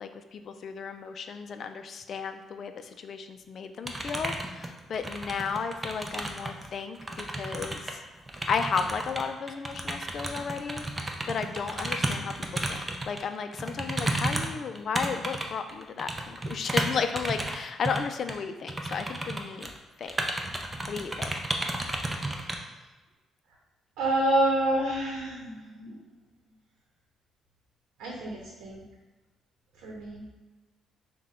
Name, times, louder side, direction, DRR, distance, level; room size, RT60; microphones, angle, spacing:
voice 1, 0.0-7.8 8.5-10.8 11.3-12.8 13.1-19.7 20.0-20.1 20.9-21.4, left 6 dB, 55° left, 8 dB, 0.4 m, -34 dB
sound 1, 3.8-6.7 6.9-13.2 13.5-17.6 17.8-18.0 18.3-18.4 18.7-19.8 20.0-22.6, right 1 dB, 20° right, 0.6 m, -32 dB
voice 2, 24.0-26.0 28.0-28.8 29.8-30.2, right 1 dB, 85° right, -2 dB, 0.8 m, -28 dB
5.7 x 2.2 x 3.6 m, 1.2 s
cardioid pair, 90°, 0 cm